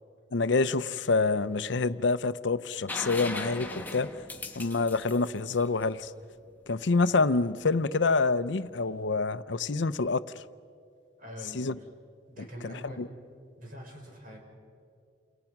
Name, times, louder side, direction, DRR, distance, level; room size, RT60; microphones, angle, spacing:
voice 1, 0.3-4.1 4.6-6.1 6.7-10.2 11.5-11.8 12.4-13.1, left 3 dB, 70° left, 14 dB, 0.7 m, -27 dB
sound 1, 2.9-6.6 8.5-8.6, left 2 dB, 10° left, 1.8 m, -39 dB
voice 2, 11.2-11.9 12.3-13.0 13.6-14.4, equal, 45° right, 1 dB, 6.3 m, -44 dB
29.5 x 28.5 x 6.0 m, 2.3 s
head